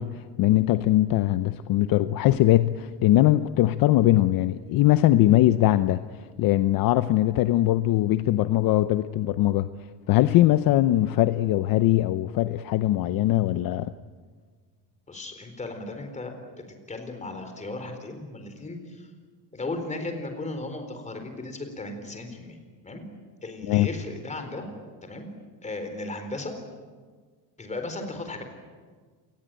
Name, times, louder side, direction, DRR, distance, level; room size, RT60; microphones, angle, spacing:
voice 1, 0.0-9.7 10.1-13.9 23.6-23.9, left 14 dB, 55° left, 0.8 m, -21 dB
voice 2, 15.1-16.3 16.9-19.1 19.5-22.6 22.8-23.0 23.4-24.7 25.0-25.3 25.6-26.5 27.6-28.4, left 2 dB, 15° left, 4.1 m, -35 dB
27.5 x 20.0 x 9.0 m
cardioid pair, 150°, 41 cm